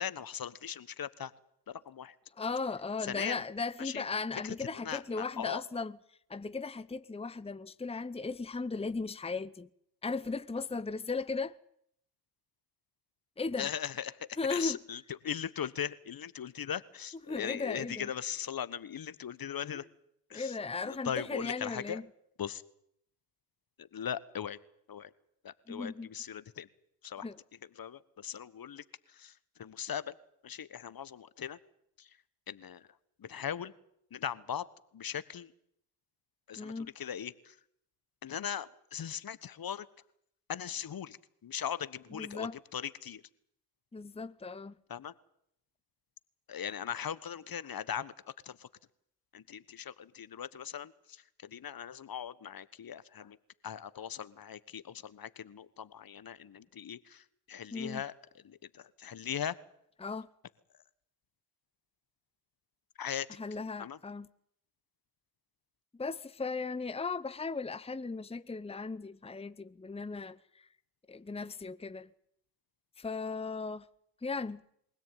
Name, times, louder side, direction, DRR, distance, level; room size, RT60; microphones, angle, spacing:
voice 1, 0.0-1.3 1.7-2.2 3.0-3.4 3.8-4.0 4.4-5.6 13.6-19.9 20.3-20.6 20.8-22.0 22.4-22.6 23.8-24.6 24.9-25.1 25.4-26.7 27.0-27.3 27.7-30.1 30.4-31.6 32.0-32.2 32.5-32.9 33.2-33.7 34.1-34.7 34.9-35.5 36.5-37.6 38.2-39.9 40.5-43.2 44.9-45.1 46.5-48.1 48.4-48.7 49.3-53.4 53.6-58.1 58.4-59.5 63.0-63.3 63.8-64.0, left 8 dB, 55° left, 1.4 m, -39 dB
voice 2, 2.4-6.0 6.3-9.7 10.0-11.5 13.4-13.7 14.4-14.8 17.3-18.1 20.3-22.1 25.7-26.1 27.2-27.4 36.6-36.9 42.1-42.6 43.9-44.7 57.7-58.0 60.0-60.3 63.4-64.3 65.9-70.7 71.1-72.1 73.0-73.9 74.2-74.6, left 4 dB, 15° left, 0.9 m, -37 dB
23.0 x 17.0 x 9.2 m
hypercardioid pair, 40°, 42 cm